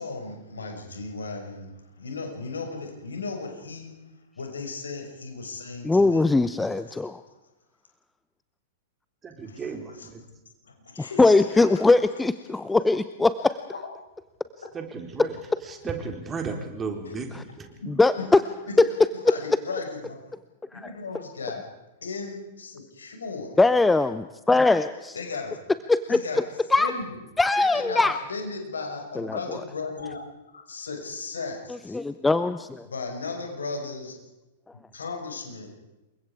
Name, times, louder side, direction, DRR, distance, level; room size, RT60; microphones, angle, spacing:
voice 1, 0.0-4.0 4.4-6.4 7.3-7.4 9.4-10.1 10.6-11.8 17.1-17.2 17.8-17.9 18.2-18.3 18.7-18.8 19.3-20.2 20.7-21.6 22.0-23.6 25.1-25.6 26.1-26.4 26.8-27.1 27.7-30.2 30.5-32.0 32.8-34.1 34.9-35.7, left 4 dB, 75° left, 3 dB, 5.8 m, -36 dB
voice 2, 5.8-7.2 11.0-13.6 17.9-18.4 18.8-18.9 23.6-25.2 25.9-26.4 26.7-26.9 27.4-28.2 29.2-29.6 31.9-32.9, left 3 dB, 10° left, 13 dB, 0.8 m, -21 dB
voice 3, 9.2-10.2 14.7-17.7, right 4 dB, 20° right, 4 dB, 3.8 m, -35 dB
28.5 x 23.5 x 4.9 m, 1.0 s
figure-of-eight pair, 100°, 0 cm